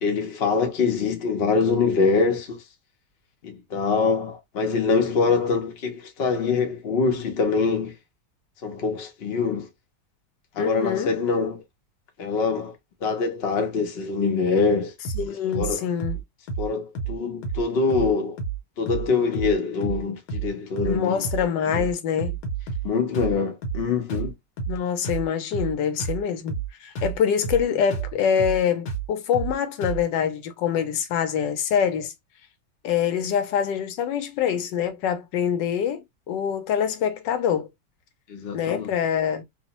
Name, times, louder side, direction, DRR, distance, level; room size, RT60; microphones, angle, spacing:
voice 1, 0.0-2.6 3.4-7.9 8.6-9.7 10.6-11.6 12.2-12.7 13.0-14.9 15.5-15.9 16.6-18.4 18.8-21.2 21.7-21.9 22.8-24.3 38.3-38.9, left 4 dB, 50° left, 0.7 m, -24 dB
voice 2, 10.6-11.1 15.2-16.2 20.8-22.4 24.7-26.5 26.8-32.1 32.8-37.7 38.5-39.4, left 8 dB, 90° left, 1.3 m, -25 dB
sound 1, 15.0-15.3 15.5-15.7 16.0-16.2 16.5-16.7 16.9-17.2 17.4-17.6 17.9-18.1 18.4-18.6 18.9-19.1 19.3-19.6 19.8-20.0 20.3-20.5 20.8-21.0 21.2-21.5 21.7-21.9 22.2-22.9 23.1-23.4 23.6-23.8 24.1-24.3 24.6-24.8 25.0-25.3 25.5-25.7 26.0-26.2 26.5-26.7 26.9-27.2 27.4-27.6 27.9-28.1 28.4-28.6 28.9-29.1 29.3-29.5 29.8-30.0, right 5 dB, 70° left, 1.4 m, -30 dB
3.0 x 2.1 x 2.8 m
omnidirectional pair, 1.9 m